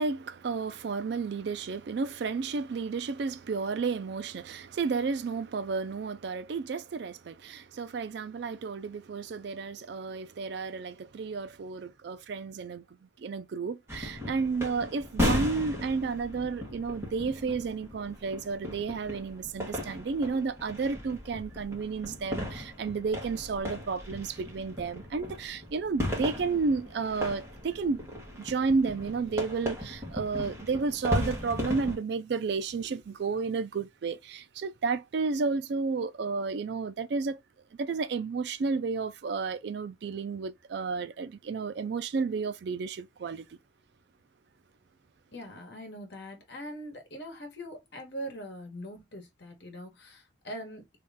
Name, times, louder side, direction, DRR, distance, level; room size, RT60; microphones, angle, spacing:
voice 1, 0.0-12.8 13.2-28.0 28.3-37.4 37.8-43.5, right 4 dB, 55° right, 0.3 m, -32 dB
sound 1, 13.9-32.0, left 1 dB, 15° right, 1.4 m, -36 dB
voice 2, 45.3-50.8, equal, 55° left, 1.3 m, -42 dB
3.0 x 2.8 x 3.5 m
head